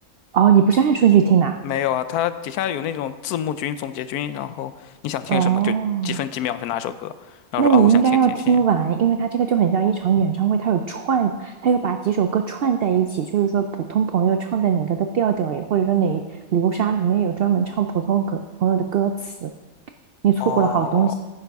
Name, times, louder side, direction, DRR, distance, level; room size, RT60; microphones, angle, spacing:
voice 1, 0.3-1.6 5.3-6.2 7.6-16.2 16.5-19.5 20.2-21.1, right 7 dB, 85° right, 7 dB, 0.5 m, -20 dB
voice 2, 1.6-5.7 6.0-8.0 8.5-8.6 10.2-10.3 20.4-21.1, left 11 dB, 90° left, 13 dB, 1.1 m, -27 dB
10.0 x 9.7 x 3.5 m, 1.2 s
omnidirectional pair, 1.6 m